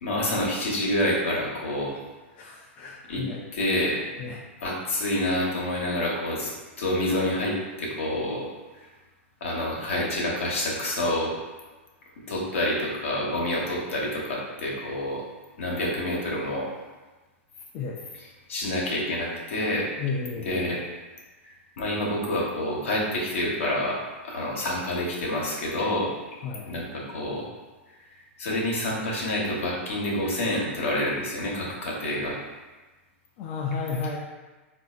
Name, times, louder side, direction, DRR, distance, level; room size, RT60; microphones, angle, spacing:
voice 1, 0.0-2.0 3.1-3.2 3.5-4.0 4.6-6.5 6.8-8.5 9.4-11.3 12.3-15.2 15.6-16.7 18.5-19.9 20.4-20.8 21.4-24.0 24.2-26.1 26.7-27.4 28.4-32.4, left 1 dB, 80° left, -4 dB, 1.0 m, -27 dB
voice 2, 2.3-3.4 4.2-4.4 17.7-18.0 20.0-20.7 26.4-26.8 33.4-34.2, left 5 dB, 45° left, -2 dB, 0.4 m, -33 dB
4.0 x 2.5 x 2.4 m, 1.2 s
hypercardioid pair, 120°, 7 cm